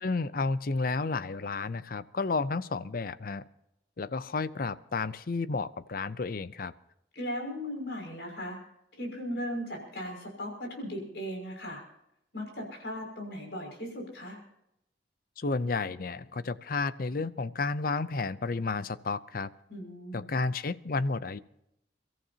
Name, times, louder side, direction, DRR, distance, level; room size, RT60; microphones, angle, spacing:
voice 1, 0.0-3.4 4.0-6.7 15.4-19.5 20.1-21.4, left 3 dB, 50° left, 15 dB, 0.6 m, -31 dB
voice 2, 7.1-8.6 9.0-11.8 12.3-14.4 19.7-20.3, equal, 70° left, 2 dB, 6.1 m, -37 dB
30.0 x 14.0 x 2.8 m, 0.81 s
head